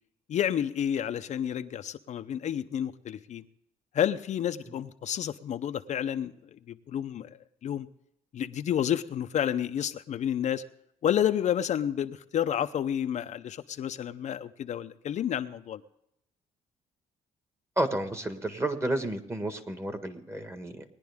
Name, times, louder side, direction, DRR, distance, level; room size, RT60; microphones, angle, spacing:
voice 1, 0.3-3.4 3.9-7.3 7.6-7.9 8.3-10.6 11.0-15.8, left 9 dB, 55° left, 8 dB, 0.6 m, -30 dB
voice 2, 17.8-20.8, right 1 dB, 20° right, 8 dB, 1.6 m, -31 dB
19.5 x 10.5 x 3.5 m, 0.76 s
cardioid pair, 100°, 14 cm